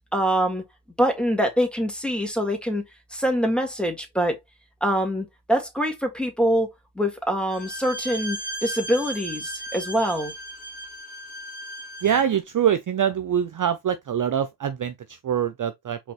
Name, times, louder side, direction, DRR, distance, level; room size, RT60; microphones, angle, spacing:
voice 1, 0.1-0.6 1.0-2.8 3.1-4.4 4.8-6.7 7.0-10.3, equal, ahead, 1.8 m, -24 dB
Bowed string instrument, 7.5-12.3, right 1 dB, 25° left, 2.5 m, -36 dB
voice 2, 12.0-16.0, right 9 dB, 45° right, 0.5 m, -24 dB
5.1 x 3.5 x 3.0 m
cardioid pair, 75°, 46 cm